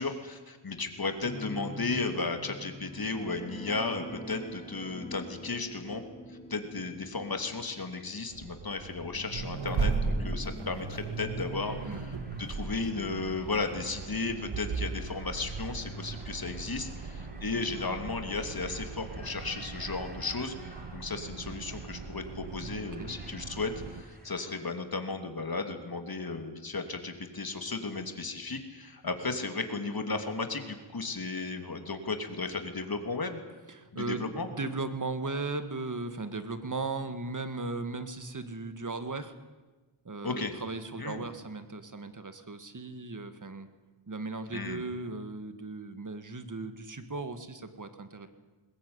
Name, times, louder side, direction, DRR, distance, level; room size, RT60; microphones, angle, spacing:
voice 1, 0.0-6.0 6.3-33.4 33.9-34.5 40.2-40.5 41.0-41.3 44.5-44.8, left 3 dB, 50° left, 6 dB, 2.8 m, -35 dB
sound 1, 1.2-14.5 14.8-15.0 15.4-15.5, left 1 dB, 15° left, 3.8 m, -46 dB
Accelerating revving vroom, 8.3-24.0, right 4 dB, 80° right, 1.8 m, -37 dB
sound 2, 11.5-24.6, right 1 dB, 20° right, 5.8 m, -54 dB
voice 2, 22.5-23.1 33.7-39.3 40.1-43.7 44.1-48.3, right 3 dB, 40° right, 10 dB, 1.9 m, -37 dB
20.5 x 20.5 x 9.6 m, 1.2 s
wide cardioid pair, 95°, 48 cm